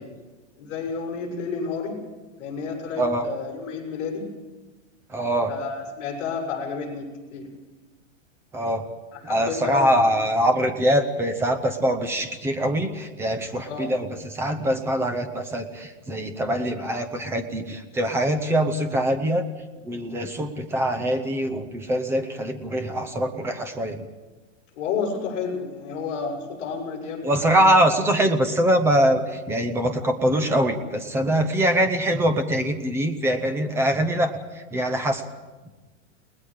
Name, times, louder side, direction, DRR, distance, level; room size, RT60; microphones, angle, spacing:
voice 1, 0.6-2.0 2.4-4.3 5.5-7.5 9.1-9.9 10.3-10.5 13.6-13.9 24.7-27.6, left 5 dB, 35° left, -2 dB, 7.0 m, -31 dB
voice 2, 5.1-5.5 8.5-8.8 9.2-19.4 19.8-24.0 27.2-35.2, right 1 dB, 5° right, 8 dB, 0.7 m, -23 dB
30.0 x 19.5 x 5.0 m, 1.2 s
supercardioid pair, 165°, 38 cm